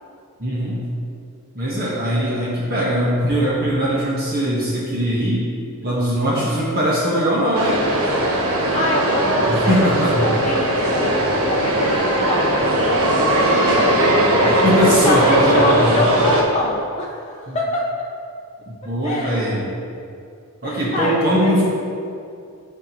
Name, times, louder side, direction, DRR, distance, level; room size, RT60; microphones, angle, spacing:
voice 1, 0.4-0.8 1.5-5.5 5.8-7.9 9.5-10.3 14.4-15.9 17.5-17.6 18.7-19.7 20.6-21.6, equal, 40° right, -6 dB, 1.2 m, -20 dB
sound 1, 7.5-16.4, right 1 dB, 70° right, 1.0 m, -18 dB
voice 2, 8.5-11.1 11.5-12.6 12.9-14.6 14.9-17.9 19.0-19.5 20.6-21.6, left 1 dB, 30° left, -4 dB, 0.6 m, -25 dB
12.5 x 4.5 x 3.0 m, 2.4 s
head